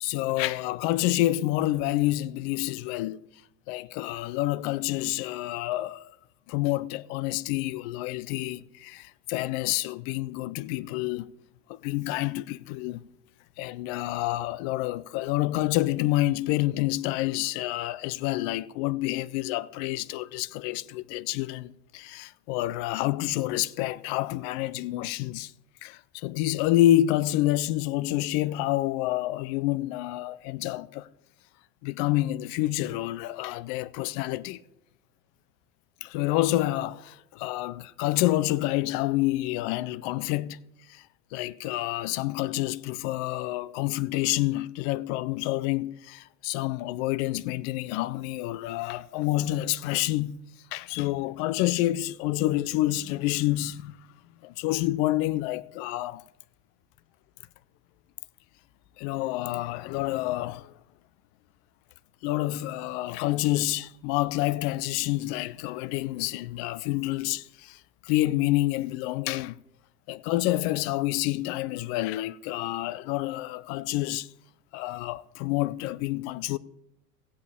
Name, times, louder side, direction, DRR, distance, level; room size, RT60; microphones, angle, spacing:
voice 1, 0.0-3.2 3.7-6.1 6.5-11.3 11.7-13.0 13.6-25.5 25.8-31.1 31.8-34.6 36.0-40.6 40.9-41.0 41.3-50.4 50.7-54.0 54.4-56.2 59.0-60.7 62.2-69.6 70.1-74.3 74.7-76.6, left 16 dB, 45° left, 0.5 m, -28 dB
15.5 x 8.1 x 3.5 m
hypercardioid pair, 85°, 47 cm